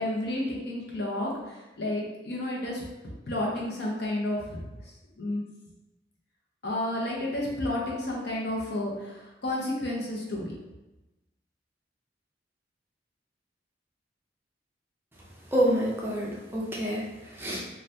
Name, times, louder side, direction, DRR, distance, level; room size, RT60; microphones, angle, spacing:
voice 1, 0.0-2.8 3.3-4.6 5.2-5.4 6.6-10.6, left 1 dB, 65° left, -3 dB, 0.8 m, -31 dB
voice 2, 15.5-17.7, right 1 dB, 15° right, -4 dB, 0.5 m, -28 dB
2.7 x 2.4 x 3.3 m, 1.0 s
head